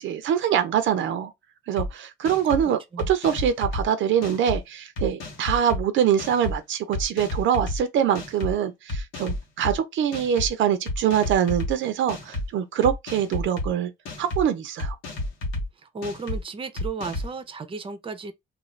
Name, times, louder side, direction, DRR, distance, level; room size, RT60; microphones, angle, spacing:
voice 1, 0.0-1.3 1.7-2.8 3.1-13.9 14.2-15.0, right 9 dB, 75° right, 0.5 m, -24 dB
sound 1, 1.8-1.9 2.3-2.6 3.0-3.8 4.2-4.6 5.0-5.8 6.2-6.6 6.9-7.8 8.2-8.5 8.9-9.7 10.1-10.5 10.9-11.7 12.1-12.5 12.8-13.7 14.1-14.4 14.8-15.6 16.0-16.4 16.8-17.3, left 1 dB, 90° left, 1.1 m, -30 dB
voice 2, 15.8-18.3, right 4 dB, 25° right, 0.5 m, -34 dB
2.4 x 2.4 x 3.1 m
cardioid pair, 90°, 20 cm